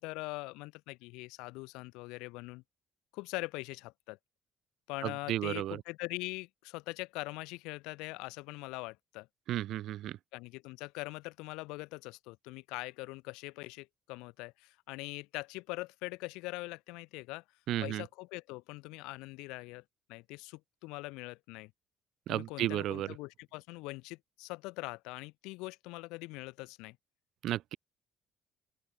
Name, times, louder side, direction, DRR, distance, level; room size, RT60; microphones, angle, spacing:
voice 1, 0.0-2.6 3.1-4.2 4.9-9.3 10.3-17.4 17.8-19.8 20.1-21.7 22.3-27.0, left 24 dB, 85° left, 1.0 m, -42 dB
voice 2, 5.0-5.8 9.5-10.2 17.7-18.0 22.3-23.1 27.4-27.8, right 13 dB, 70° right, 0.5 m, -33 dB
open air
supercardioid pair, 65°, 0 cm